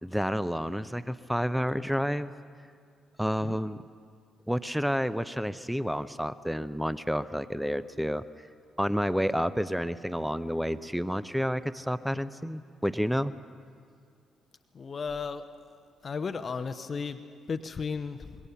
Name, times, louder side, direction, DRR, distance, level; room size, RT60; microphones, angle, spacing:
voice 1, 0.0-2.3 3.2-3.8 4.5-8.2 8.8-13.3, equal, ahead, 14 dB, 0.8 m, -30 dB
voice 2, 14.7-15.5 16.0-18.4, left 5 dB, 45° left, 8 dB, 0.9 m, -34 dB
25.5 x 22.0 x 5.9 m, 2.2 s
figure-of-eight pair, 40°, 0 cm